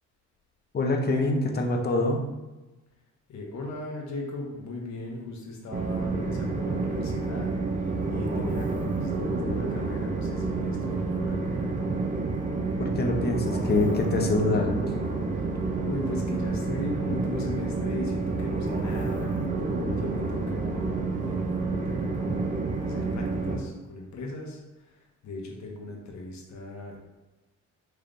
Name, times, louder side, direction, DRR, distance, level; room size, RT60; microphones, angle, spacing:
voice 1, 0.7-2.2 12.8-14.9, left 2 dB, 35° left, 2 dB, 0.7 m, -25 dB
voice 2, 3.3-11.9 15.8-19.4 19.9-27.0, left 2 dB, 65° left, 0 dB, 1.0 m, -38 dB
Train, 5.7-23.6, right 3 dB, 25° right, 0.6 m, -29 dB
4.5 x 3.2 x 2.6 m, 1.1 s
cardioid pair, 90°, 30 cm